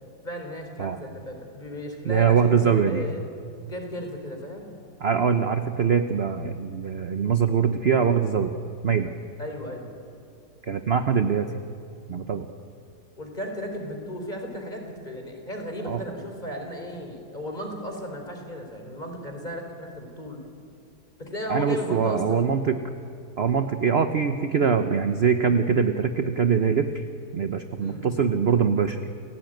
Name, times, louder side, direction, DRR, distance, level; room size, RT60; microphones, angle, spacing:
voice 1, 0.2-3.2 3.7-4.7 9.4-9.9 12.3-12.4 13.2-20.4 21.2-22.5 27.8-28.1, equal, 25° left, 3 dB, 4.2 m, -35 dB
voice 2, 2.0-3.0 5.0-8.5 8.8-9.1 10.6-11.5 12.1-12.5 15.8-16.0 21.5-22.8 23.4-27.0 27.3-29.0, right 6 dB, 45° right, 8 dB, 1.0 m, -23 dB
29.0 x 17.0 x 9.2 m, 2.4 s
omnidirectional pair, 1.8 m